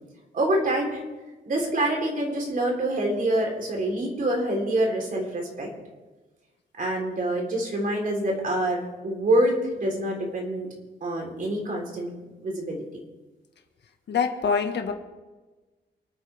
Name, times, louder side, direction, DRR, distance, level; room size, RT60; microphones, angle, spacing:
voice 1, 0.3-1.0 1.5-5.7 6.8-10.7 11.0-12.8, right 1 dB, 45° right, 0 dB, 3.9 m, -26 dB
voice 2, 14.1-14.9, left 6 dB, 65° left, 5 dB, 1.7 m, -25 dB
28.0 x 9.4 x 3.6 m, 1.2 s
wide cardioid pair, 155°, 19 cm